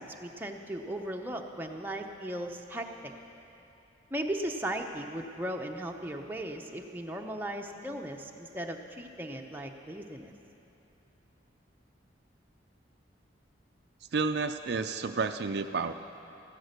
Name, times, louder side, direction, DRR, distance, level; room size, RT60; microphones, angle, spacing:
voice 1, 0.0-3.1 4.1-10.3, right 1 dB, 10° right, 2 dB, 0.7 m, -37 dB
voice 2, 14.1-15.9, right 4 dB, 55° right, 8 dB, 0.4 m, -30 dB
14.0 x 12.5 x 6.6 m, 2.8 s
head